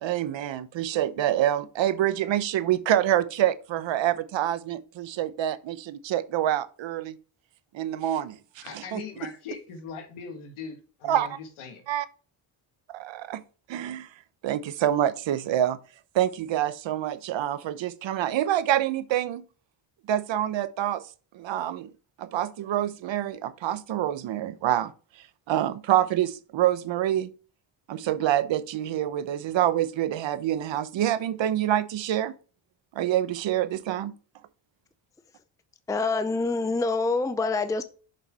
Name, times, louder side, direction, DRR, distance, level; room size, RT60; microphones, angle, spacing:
voice 1, 0.0-7.1 7.7-9.0 11.1-11.3 11.9-12.1 12.9-13.4 13.7-14.1 14.4-15.8 16.1-19.4 20.1-21.1 21.3-21.9 22.2-24.9 25.5-27.3 27.9-32.3 32.9-34.1, right 12 dB, 65° right, 0.9 m, -26 dB
voice 2, 8.6-11.8, left 5 dB, 90° left, 1.7 m, -40 dB
voice 3, 35.9-37.8, left 3 dB, 5° left, 0.6 m, -26 dB
7.1 x 5.6 x 3.4 m
cardioid pair, 85°, 48 cm